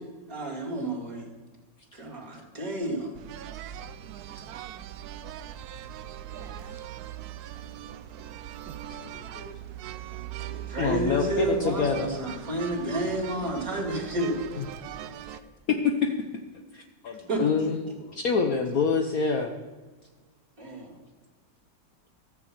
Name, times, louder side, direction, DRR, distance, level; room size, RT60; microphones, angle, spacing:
voice 1, 0.3-1.3 1.9-3.2 10.4-14.6 17.3-17.4 20.6-20.9, right 2 dB, 45° right, -1 dB, 2.7 m, -31 dB
sound 1, 3.1-15.4, right 11 dB, 75° right, 0.9 m, -40 dB
voice 2, 6.3-6.8 8.8-9.6 17.0-18.2, left 5 dB, 80° left, 3 dB, 2.1 m, -48 dB
voice 3, 10.8-12.1 14.6-14.7 15.7-16.1 16.7-16.8 17.4-17.8 18.1-19.5, left 5 dB, 60° left, 3 dB, 1.0 m, -25 dB
14.0 x 4.8 x 7.6 m, 1.3 s
omnidirectional pair, 2.1 m